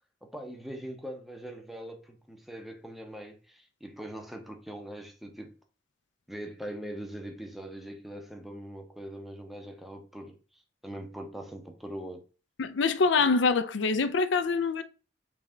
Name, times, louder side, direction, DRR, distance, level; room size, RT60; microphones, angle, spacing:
voice 1, 0.2-5.6 6.3-12.3, right 1 dB, ahead, 0.7 m, -42 dB
voice 2, 12.6-14.8, left 4 dB, 65° left, 0.5 m, -25 dB
3.4 x 3.3 x 3.7 m
head